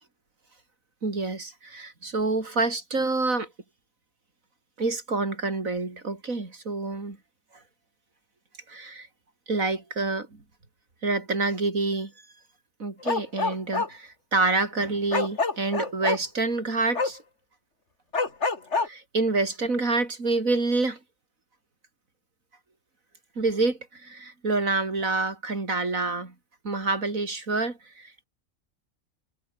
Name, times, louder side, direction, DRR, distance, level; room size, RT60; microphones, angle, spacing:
voice 1, 1.0-3.5 4.8-7.2 8.7-9.1 9.5-10.4 11.0-12.1 12.8-17.2 18.8-21.0 23.4-26.3 26.6-28.2, right 3 dB, 85° right, 4.3 m, -27 dB
Bark, 13.0-13.9 15.1-16.2 17.0-17.1 18.1-18.9, left 4 dB, 55° left, 2.8 m, -26 dB
omnidirectional pair, 1.4 m